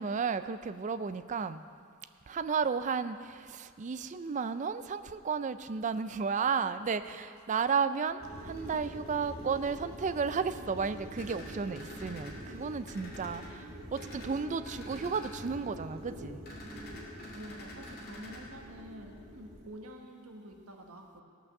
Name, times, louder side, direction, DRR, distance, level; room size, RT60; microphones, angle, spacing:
voice 1, 0.0-1.6 2.3-16.4, right 5 dB, 35° right, 12 dB, 0.4 m, -33 dB
sound 1, 8.2-19.6, equal, 15° right, 3.8 m, -46 dB
sound 2, 11.2-12.3 12.9-13.5 13.9-14.3 14.6-15.3 16.5-18.4, left 1 dB, 45° left, 2.2 m, -48 dB
voice 2, 17.3-21.2, equal, 75° right, 2 dB, 1.3 m, -48 dB
16.5 x 6.1 x 6.5 m, 2.3 s
head